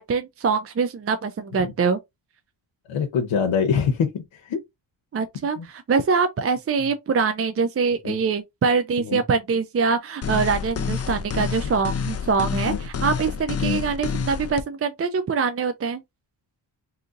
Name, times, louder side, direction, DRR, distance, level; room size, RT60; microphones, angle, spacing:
voice 1, 0.0-2.0 5.1-16.0, right 5 dB, 35° right, 0.4 m, -24 dB
voice 2, 2.9-4.6 5.6-5.7 8.0-8.2 9.0-9.2 12.6-12.8 13.6-13.8, left 6 dB, 90° left, 0.7 m, -24 dB
sound 1, 10.2-14.6, left 6 dB, 35° left, 0.5 m, -28 dB
2.8 x 2.5 x 3.7 m
cardioid pair, 80°, 45 cm